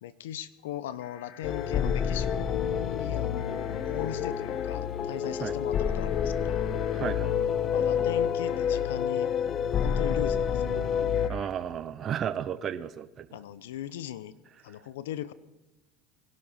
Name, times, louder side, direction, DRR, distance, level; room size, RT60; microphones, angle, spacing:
voice 1, 0.0-6.7 7.6-9.3 9.8-10.8 13.3-14.4 14.6-15.3, left 11 dB, 85° left, 17 dB, 0.8 m, -38 dB
sound 1, 1.0-2.4 3.4-4.7 5.7-7.1 8.5-8.8 9.8-10.1 11.1-11.5, left 9 dB, 60° left, 1.6 m, -52 dB
sound 2, 1.4-11.3, left 8 dB, 40° left, 0.8 m, -28 dB
voice 2, 6.9-7.4 11.3-13.3, right 9 dB, 40° right, 12 dB, 0.8 m, -33 dB
20.0 x 12.0 x 5.6 m, 1.0 s
supercardioid pair, 105°, 0 cm